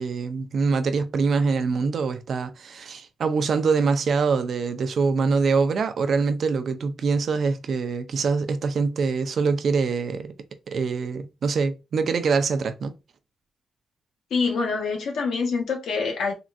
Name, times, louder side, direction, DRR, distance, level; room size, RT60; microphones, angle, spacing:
voice 1, 0.0-10.3 10.7-12.9, right 4 dB, 55° right, 0.4 m, -24 dB
voice 2, 14.3-16.3, left 4 dB, 75° left, 0.9 m, -25 dB
3.6 x 2.3 x 2.4 m
wide cardioid pair, 155°, 0 cm